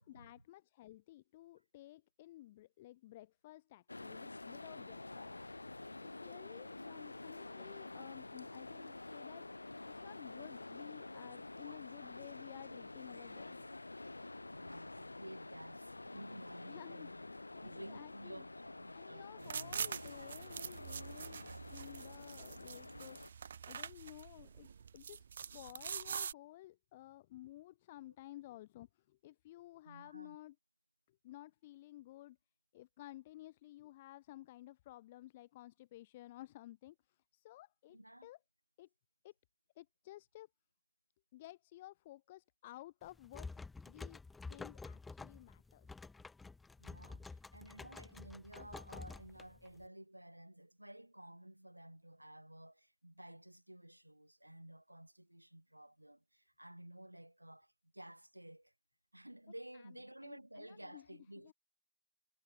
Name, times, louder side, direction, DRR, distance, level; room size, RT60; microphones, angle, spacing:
voice 1, 0.0-5.5 6.0-9.5 9.9-13.7 16.6-18.4 18.9-23.2 23.7-25.3 25.5-30.6 31.1-32.4 32.7-38.4 38.8-38.9 39.2-39.3 39.8-40.5 41.3-43.5 43.9-44.2 44.5-45.9 59.7-59.9 60.2-61.1 61.4-61.5, left 15 dB, 55° left, 7.6 m, -55 dB
sound 1, 3.9-23.3, left 2 dB, 85° left, 2.7 m, -49 dB
voice 2, 6.7-7.1 14.5-17.2 17.6-19.5 28.1-28.2 29.8-30.4 37.9-38.3 46.8-58.7 59.1-61.5, right 1 dB, 85° right, 6.6 m, -54 dB
sound 2, 19.4-26.3, right 7 dB, 70° right, 1.4 m, -45 dB
sound 3, 43.0-49.9, left 3 dB, 10° left, 3.0 m, -50 dB
figure-of-eight pair, 90°, 0 cm